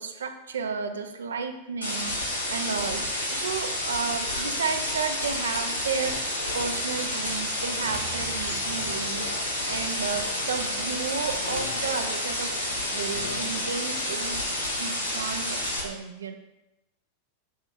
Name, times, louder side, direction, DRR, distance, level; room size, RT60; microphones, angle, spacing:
voice 1, 0.0-2.2 2.5-6.2 6.5-12.5 12.9-16.3, right 6 dB, 65° right, 6 dB, 0.3 m, -33 dB
sound 1, 1.8-15.8, left 1 dB, 85° left, 0.8 m, -30 dB
sound 2, 5.9-13.7, left 4 dB, 70° left, 0.3 m, -42 dB
sound 3, 7.8-10.9, right 7 dB, 20° right, 0.8 m, -47 dB
2.7 x 2.3 x 4.0 m, 0.96 s
figure-of-eight pair, 90°, 0 cm